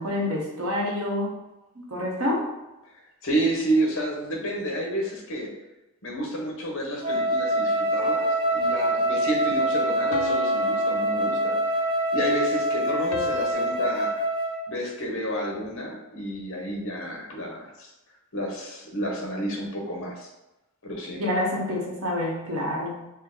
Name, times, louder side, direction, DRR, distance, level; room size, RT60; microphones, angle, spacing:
voice 1, 0.0-1.4 1.9-2.5 21.2-23.1, left 1 dB, 70° right, -2 dB, 1.0 m, -27 dB
voice 2, 3.2-5.5 6.0-8.3 8.5-11.6 12.1-14.2 14.7-17.9 18.3-20.3 20.8-21.2, right 1 dB, 60° left, 1 dB, 0.9 m, -30 dB
Wind instrument woodwind instrument, 7.0-14.7, right 1 dB, 25° right, 0.5 m, -25 dB
sound 1, 8.0-9.0 10.1-12.0 13.1-13.5, left 6 dB, 85° left, 0.4 m, -37 dB
4.4 x 2.2 x 3.7 m, 0.98 s
head